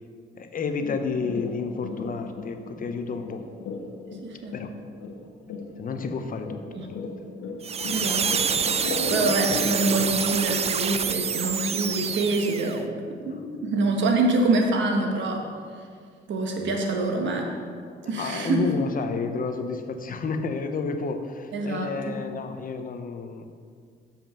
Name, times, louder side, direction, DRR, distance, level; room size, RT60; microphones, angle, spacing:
voice 1, 0.3-3.4 4.5-4.7 5.8-7.0 16.6-16.7 18.1-23.4, left 4 dB, 45° left, 7 dB, 0.7 m, -31 dB
sound 1, 0.7-11.0 11.4-11.5, left 3 dB, 90° left, 1.0 m, -35 dB
voice 2, 4.1-4.5 6.7-6.9 7.9-8.2 8.6-12.9 13.2-15.4 16.3-17.5 18.1-18.7 21.5-22.2, right 2 dB, 70° right, 2 dB, 1.3 m, -26 dB
sound 2, 7.6-12.8, right 7 dB, 30° right, 0.4 m, -27 dB
7.2 x 5.6 x 5.6 m, 2.1 s
cardioid pair, 90°, 20 cm